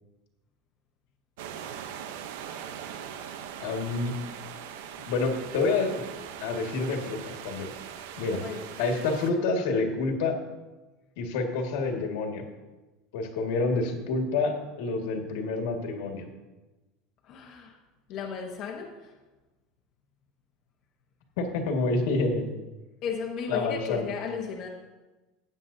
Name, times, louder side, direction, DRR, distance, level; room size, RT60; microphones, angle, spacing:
sound 1, 1.4-9.3, right 9 dB, 85° right, 0.8 m, -41 dB
voice 1, 3.6-4.1 5.1-6.0 6.4-7.7 8.2-8.4 8.8-10.4 11.2-12.5 13.1-16.3 21.4-22.5 23.5-24.0, left 3 dB, 75° left, 2 dB, 1.9 m, -28 dB
voice 2, 8.4-8.7 17.2-17.7 18.1-19.2 23.0-24.7, left 6 dB, 40° left, -1 dB, 1.0 m, -34 dB
15.0 x 9.3 x 2.8 m, 1.1 s
cardioid pair, 170°, 0 cm